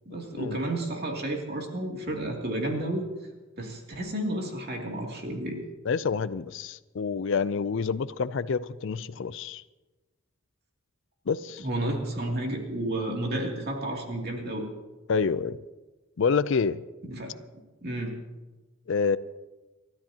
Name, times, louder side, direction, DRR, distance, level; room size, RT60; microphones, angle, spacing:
voice 1, 0.1-3.1 3.6-5.6 11.6-14.7 17.1-17.3 17.8-18.1, right 1 dB, 45° right, 2.6 m, -31 dB
voice 2, 5.9-9.6 11.3-11.7 15.1-15.6 16.2-16.8 18.9-19.2, left 5 dB, 60° left, 0.4 m, -27 dB
29.5 x 13.0 x 2.9 m
head